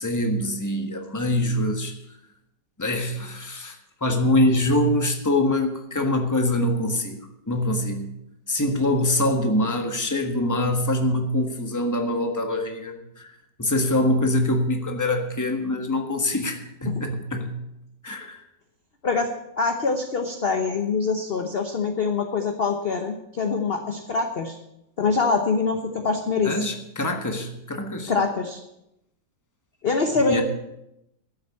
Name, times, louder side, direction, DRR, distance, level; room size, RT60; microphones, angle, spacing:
voice 1, 0.0-1.9 2.8-8.1 8.5-13.3 13.6-17.6 18.0-18.4 26.4-28.1 30.1-30.4, left 1 dB, 10° left, 4 dB, 1.3 m, -24 dB
voice 2, 19.6-24.6 25.0-26.6 28.1-28.6 29.8-30.4, left 4 dB, 40° left, 5 dB, 1.0 m, -24 dB
12.5 x 8.0 x 8.4 m, 0.84 s
omnidirectional pair, 2.0 m